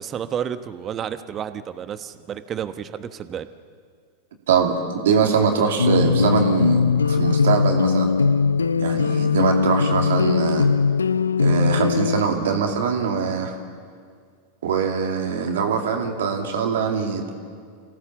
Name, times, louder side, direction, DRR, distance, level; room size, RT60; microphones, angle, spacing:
voice 1, 0.0-3.5, right 8 dB, 30° right, 11 dB, 1.2 m, -31 dB
voice 2, 4.5-6.8 7.1-8.1 8.8-10.7 11.4-13.5 14.6-17.3, right 6 dB, 70° right, 3 dB, 2.6 m, -22 dB
sound 1, 5.8-12.2, left 5 dB, 85° left, 0.5 m, -20 dB
27.5 x 16.5 x 7.2 m, 2.1 s
figure-of-eight pair, 90°, 0 cm